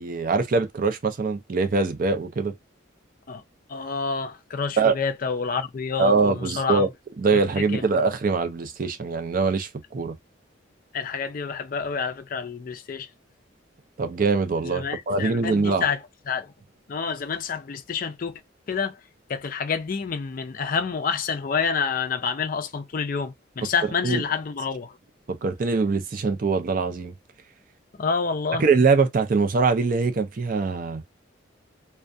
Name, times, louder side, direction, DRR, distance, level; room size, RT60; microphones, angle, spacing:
voice 1, 0.0-2.5 4.8-5.0 6.0-6.9 7.2-10.2 14.0-15.9 24.0-24.2 25.3-27.1 28.6-31.0, right 4 dB, 45° right, 0.4 m, -23 dB
voice 2, 3.7-6.8 7.6-7.8 10.9-13.1 14.6-16.0 16.3-16.5 16.9-18.4 18.7-19.0 19.3-25.0 28.0-28.6, left 5 dB, 45° left, 0.4 m, -28 dB
2.3 x 2.1 x 2.6 m
head